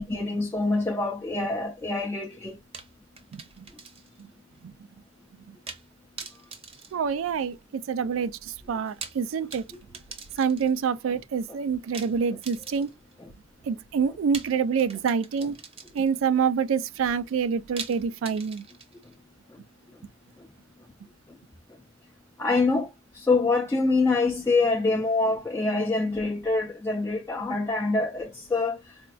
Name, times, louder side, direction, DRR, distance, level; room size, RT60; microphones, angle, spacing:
voice 1, 0.0-2.6 13.2-13.3 20.4-20.5 22.4-22.9 23.1-29.0, left 3 dB, 10° left, 0.3 m, -25 dB
sound 1, 2.7-4.3 4.5-4.6 5.7-5.9 6.2-7.7 8.8-10.9 11.9-13.1 14.3-16.2 17.8-19.1, right 5 dB, 30° right, 0.6 m, -43 dB
voice 2, 3.3-3.7 4.2-4.3 4.6-4.7 5.5-5.6 6.9-9.6 10.4-12.9 13.7-15.5 15.9-18.7, right 6 dB, 75° right, 0.3 m, -27 dB
4.2 x 2.2 x 2.3 m
head